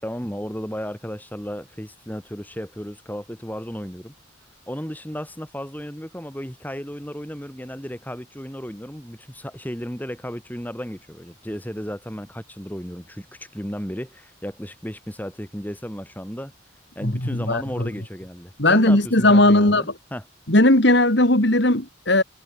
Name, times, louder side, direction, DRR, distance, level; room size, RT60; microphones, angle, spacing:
voice 1, 0.0-4.1 4.7-16.5 16.9-20.2, equal, 10° left, 6.5 m, -34 dB
voice 2, 17.0-17.9 18.6-19.8 20.5-22.2, left 1 dB, 55° left, 3.2 m, -17 dB
head